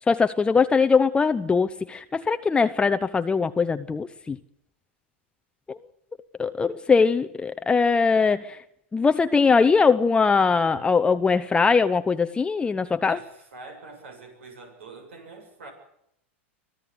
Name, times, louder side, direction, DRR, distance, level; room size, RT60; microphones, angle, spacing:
voice 1, 0.1-4.4 6.4-8.4 8.9-13.2, left 5 dB, 15° left, 9 dB, 0.8 m, -21 dB
voice 2, 13.1-15.7, right 3 dB, 75° right, 5 dB, 7.2 m, -44 dB
24.0 x 15.0 x 8.2 m, 0.76 s
hypercardioid pair, 100°, 7 cm